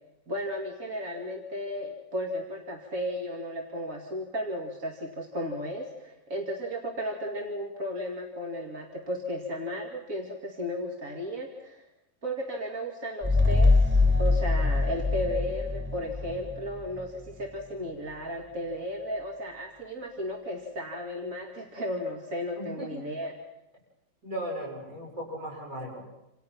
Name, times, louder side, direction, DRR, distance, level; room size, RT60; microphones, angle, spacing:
voice 1, 0.3-11.9 12.2-23.3, equal, 70° right, 1 dB, 2.9 m, -34 dB
sound 1, 13.2-16.6, left 3 dB, 10° right, 0.8 m, -23 dB
voice 2, 22.6-22.9 24.2-26.1, equal, 50° right, -4 dB, 7.3 m, -37 dB
29.0 x 27.0 x 5.9 m, 0.91 s
omnidirectional pair, 1.5 m